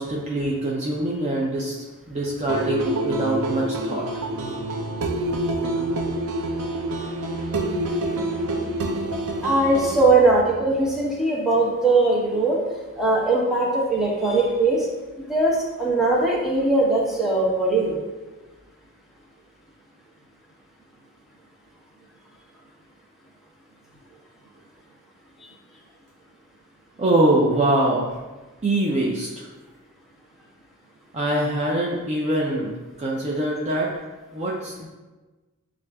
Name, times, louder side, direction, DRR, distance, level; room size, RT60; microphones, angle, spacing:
voice 1, 0.0-4.1 27.0-28.2 28.6-29.5 31.1-33.9 34.3-34.9, right 1 dB, 30° right, -3 dB, 0.5 m, -24 dB
sound 1, 2.5-10.0, right 1 dB, 90° right, 0.5 m, -27 dB
voice 2, 9.4-12.6 13.0-14.9 15.2-18.0, right 2 dB, ahead, -5 dB, 0.8 m, -20 dB
7.3 x 2.5 x 2.2 m, 1.2 s
head